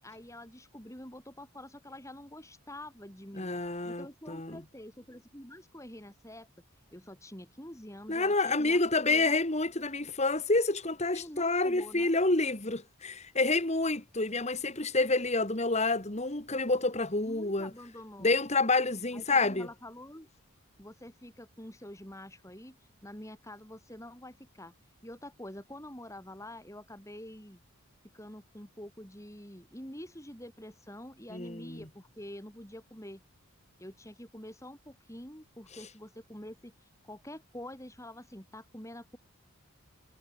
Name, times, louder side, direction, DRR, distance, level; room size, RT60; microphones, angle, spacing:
voice 1, 0.0-3.5 3.8-6.5 6.9-9.3 11.1-12.2 17.1-18.3 19.1-20.3 20.8-22.8 23.0-24.7 25.0-27.6 28.1-33.2 33.8-39.2, left 1 dB, 15° left, 6.4 m, -47 dB
voice 2, 3.4-4.6 8.1-17.7 18.2-19.7 31.3-31.9, left 3 dB, 30° left, 2.1 m, -28 dB
head